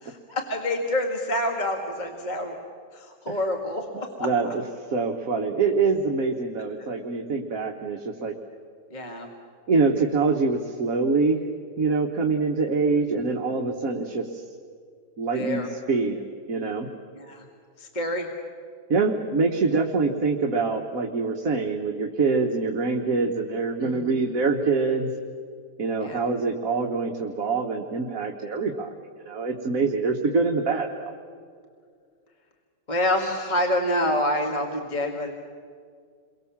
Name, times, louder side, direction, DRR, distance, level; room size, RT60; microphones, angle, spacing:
voice 1, 0.0-2.6 2.9-4.3 6.8-6.9 8.9-9.3 12.9-13.0 15.3-15.7 17.1-17.4 17.8-18.3 23.8-24.3 26.0-26.2 32.9-35.3, left 1 dB, 25° left, 1 dB, 2.0 m, -27 dB
voice 2, 4.2-8.3 9.7-11.4 11.8-14.4 15.2-16.2 16.5-16.9 18.9-25.1 25.8-28.9 29.2-31.1, right 4 dB, 55° right, 2 dB, 1.7 m, -25 dB
29.0 x 23.0 x 7.3 m, 2.2 s
omnidirectional pair, 1.8 m